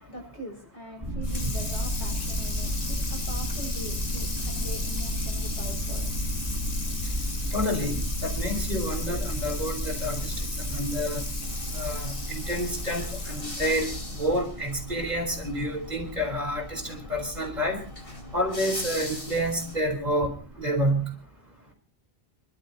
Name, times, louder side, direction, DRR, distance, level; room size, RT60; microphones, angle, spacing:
voice 1, 0.0-7.2, right 1 dB, 85° left, 7.3 m, -43 dB
sound 1, 1.0-20.6, equal, 25° right, 3.3 m, -33 dB
Water tap faucet / Sink (filling or washing), 1.2-13.7, left 3 dB, 40° left, 1.4 m, -37 dB
voice 2, 7.5-11.2 11.7-17.8 18.3-21.0, equal, 40° right, 4.6 m, -29 dB
sound 2, 11.4-19.8, left 2 dB, 60° left, 3.7 m, -41 dB
29.5 x 12.0 x 3.0 m
omnidirectional pair, 1.1 m